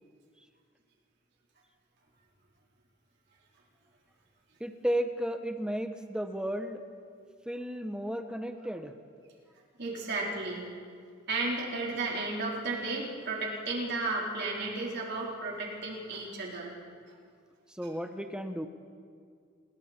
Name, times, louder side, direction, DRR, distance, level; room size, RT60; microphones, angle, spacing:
voice 1, 4.6-6.8 7.5-8.9 17.7-18.7, equal, 5° right, 7 dB, 1.1 m, -33 dB
voice 2, 9.8-10.7 11.3-16.7, right 2 dB, 55° right, -3 dB, 4.3 m, -33 dB
29.0 x 21.0 x 4.5 m, 2.2 s
head